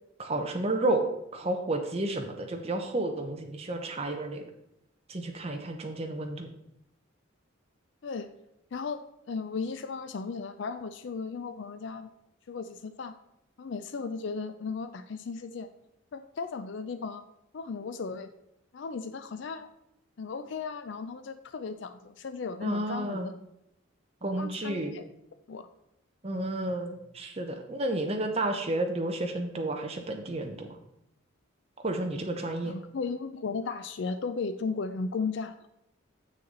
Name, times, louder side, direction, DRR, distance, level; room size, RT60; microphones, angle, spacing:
voice 1, 0.2-1.1 1.3-4.4 5.1-6.5 22.6-23.3 24.2-24.9 26.2-30.7 31.8-32.7, right 2 dB, 30° right, 3 dB, 0.8 m, -31 dB
voice 2, 8.7-12.1 12.5-13.1 13.6-15.7 16.1-17.2 17.5-18.3 18.7-19.7 20.2-23.3 24.4-25.1 25.5-25.7 32.6-35.7, left 4 dB, 60° left, 9 dB, 0.4 m, -36 dB
7.1 x 6.5 x 3.9 m, 0.84 s
head